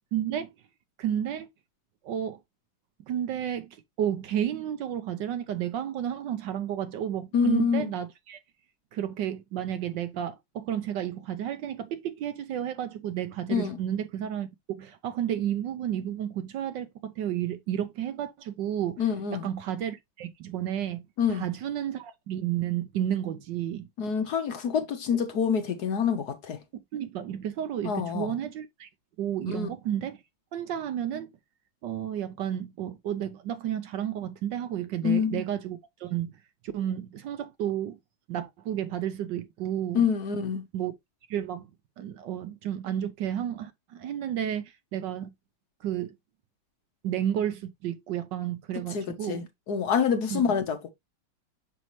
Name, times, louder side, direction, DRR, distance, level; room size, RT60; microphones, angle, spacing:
voice 1, 0.1-0.5 1.0-1.5 2.0-2.4 3.1-8.4 8.9-19.0 19.3-21.0 21.3-23.9 26.9-28.9 29.2-30.2 30.5-31.3 31.8-36.4 36.6-38.0 38.3-40.1 40.7-40.9 41.3-41.7 42.0-45.3 45.8-46.1 47.0-49.5 50.3-50.5, right 10 dB, 70° right, 1.2 m, -32 dB
voice 2, 7.3-7.8 13.5-13.8 19.0-19.5 21.2-21.4 24.0-26.6 27.8-28.3 29.5-29.7 35.0-35.4 39.9-40.7 48.9-50.9, left 6 dB, 60° left, 1.2 m, -26 dB
6.3 x 5.3 x 3.0 m
omnidirectional pair, 2.2 m